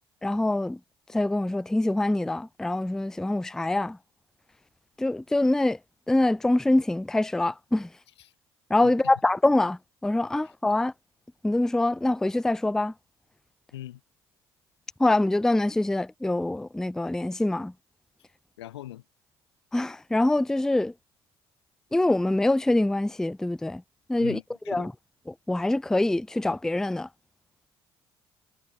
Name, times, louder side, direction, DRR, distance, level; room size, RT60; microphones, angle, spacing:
voice 1, 0.2-0.8 1.1-4.0 5.0-5.8 6.1-7.9 8.7-10.9 11.4-12.9 15.0-17.7 19.7-20.9 21.9-23.8 24.1-24.4 24.7-24.9 25.3-27.1, left 2 dB, 5° left, 0.4 m, -24 dB
voice 2, 18.6-19.0 24.2-24.9, left 14 dB, 80° left, 0.9 m, -41 dB
figure-of-eight pair, 55°, 14 cm